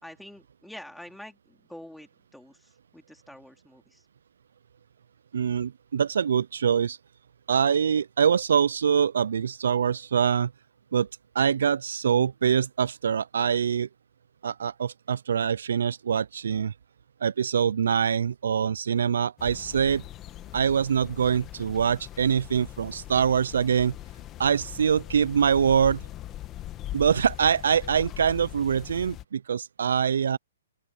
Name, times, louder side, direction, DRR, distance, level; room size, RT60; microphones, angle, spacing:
voice 1, 0.0-4.1, left 1 dB, ahead, 3.7 m, -47 dB
voice 2, 5.3-7.0 7.5-10.5 10.9-11.1 11.4-13.9 14.4-16.7 17.2-20.0 20.5-23.9 24.4-26.0 26.9-30.4, right 7 dB, 70° right, 0.3 m, -24 dB
sound 1, 19.4-29.2, left 13 dB, 20° left, 1.8 m, -41 dB
open air
hypercardioid pair, 155°, 0 cm